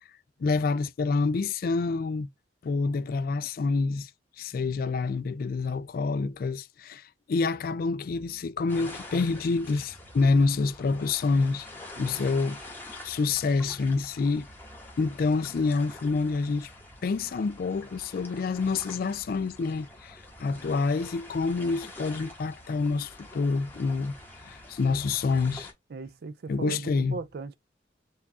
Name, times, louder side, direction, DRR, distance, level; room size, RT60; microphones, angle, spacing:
voice 1, 0.4-2.3 2.6-4.1 4.4-7.0 7.3-11.7 12.0-12.6 13.0-14.5 15.0-16.7 17.0-24.1 24.4-25.7 26.5-27.2, left 4 dB, 50° left, 0.3 m, -27 dB
sound 1, 8.7-25.7, left 1 dB, 10° left, 1.0 m, -46 dB
voice 2, 25.9-27.6, right 4 dB, 55° right, 0.4 m, -38 dB
4.6 x 2.4 x 4.1 m
head